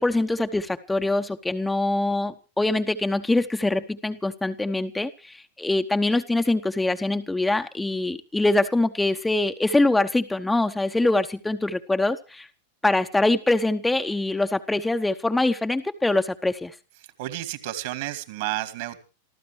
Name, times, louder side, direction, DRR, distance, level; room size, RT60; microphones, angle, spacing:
voice 1, 0.0-12.5 12.8-16.7, left 2 dB, 5° left, 7 dB, 0.9 m, -24 dB
voice 2, 17.2-19.0, right 15 dB, 50° right, 11 dB, 2.3 m, -31 dB
27.0 x 14.5 x 3.2 m, 0.35 s
figure-of-eight pair, 90°, 0 cm